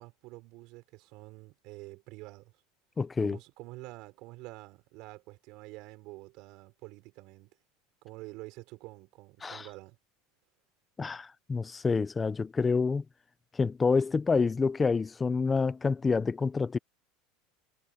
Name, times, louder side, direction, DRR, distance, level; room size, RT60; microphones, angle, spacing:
voice 1, 0.0-2.5 3.2-7.5 8.0-10.0, right 22 dB, 60° right, 5.6 m, -48 dB
voice 2, 3.0-3.4 9.4-9.7 11.0-13.0 13.6-16.8, left 4 dB, 20° left, 0.7 m, -28 dB
supercardioid pair, 120°, 0 cm